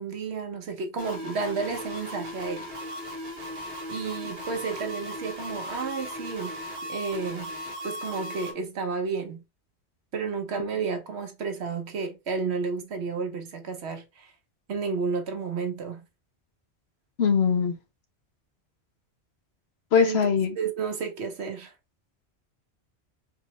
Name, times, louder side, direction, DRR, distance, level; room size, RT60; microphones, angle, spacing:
voice 1, 0.0-2.7 3.9-6.6 6.9-7.5 7.8-9.4 10.1-14.3 14.7-16.0 20.0-20.3 20.6-21.7, right 5 dB, 75° right, 1.1 m, -31 dB
sound 1, 1.0-8.5, left 1 dB, 50° right, 1.2 m, -37 dB
voice 2, 17.2-17.7 19.9-20.6, left 6 dB, 70° left, 1.1 m, -21 dB
4.5 x 2.8 x 3.0 m
omnidirectional pair, 1.1 m